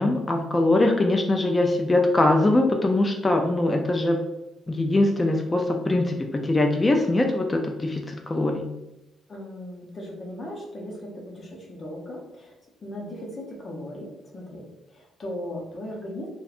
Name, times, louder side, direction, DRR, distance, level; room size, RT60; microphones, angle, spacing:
voice 1, 0.0-4.2 4.7-8.6, left 2 dB, 20° left, 3 dB, 0.3 m, -22 dB
voice 2, 9.3-12.5 12.8-16.3, left 1 dB, 40° left, -1 dB, 0.7 m, -37 dB
2.6 x 2.2 x 2.4 m, 0.95 s
cardioid pair, 90°, 0 cm